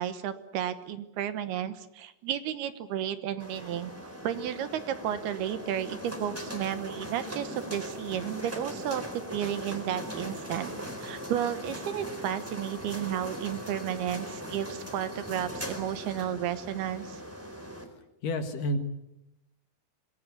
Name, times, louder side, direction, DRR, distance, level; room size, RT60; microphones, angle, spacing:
voice 1, 0.0-3.9 4.2-10.7 11.0-17.2, right 10 dB, 70° right, 11 dB, 2.9 m, -33 dB
sound 1, 3.4-17.8, equal, 5° right, 3.4 m, -40 dB
voice 2, 18.2-18.8, left 1 dB, 60° left, 7 dB, 3.0 m, -29 dB
25.0 x 21.5 x 8.3 m, 0.87 s
omnidirectional pair, 4.9 m